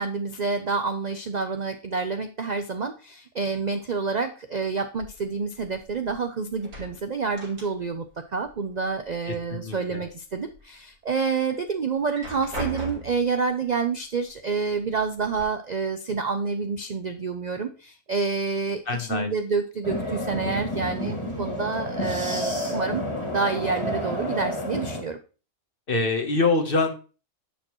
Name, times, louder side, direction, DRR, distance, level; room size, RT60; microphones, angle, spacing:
voice 1, 0.0-8.1 8.3-23.1 23.3-25.2, right 4 dB, 55° right, 7 dB, 0.4 m, -28 dB
sound 1, 5.0-6.2 6.5-8.1 8.4-9.4 9.8-10.6 11.1-11.2 11.9-13.3 14.3-14.4 14.8-15.4, right 2 dB, 80° right, 3.4 m, -39 dB
voice 2, 9.3-10.0 18.9-19.3 25.9-26.9, left 3 dB, 40° left, 6 dB, 1.2 m, -25 dB
sound 2, 19.8-25.0, equal, 20° left, 2.1 m, -30 dB
10.0 x 6.7 x 3.0 m, 0.34 s
omnidirectional pair, 1.6 m